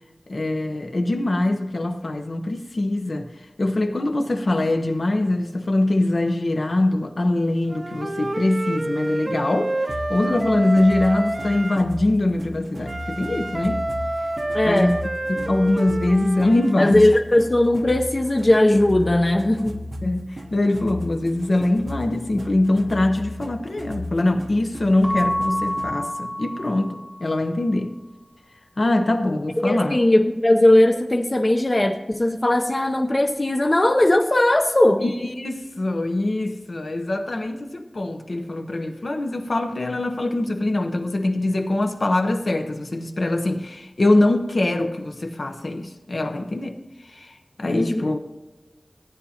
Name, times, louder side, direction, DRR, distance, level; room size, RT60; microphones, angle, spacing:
voice 1, 0.3-3.3 3.6-9.7 10.1-13.8 14.6-14.9 15.3-17.1 20.0-27.9 28.8-30.0 35.0-46.8 47.1-47.3 47.6-48.2, left 2 dB, 70° left, 0.9 m, -23 dB
Wind instrument woodwind instrument, 7.7-11.8 12.8-16.8, right 1 dB, 45° right, 0.6 m, -28 dB
sound 1, 9.9-26.1, left 1 dB, 75° right, 1.1 m, -36 dB
voice 2, 14.5-15.0 16.8-19.8 29.6-35.0 47.7-48.0, left 1 dB, 40° left, 0.7 m, -18 dB
Keyboard (musical) / Bell, 25.0-27.5, left 1 dB, ahead, 0.9 m, -28 dB
15.5 x 9.4 x 2.9 m
wide cardioid pair, 60°, 0 cm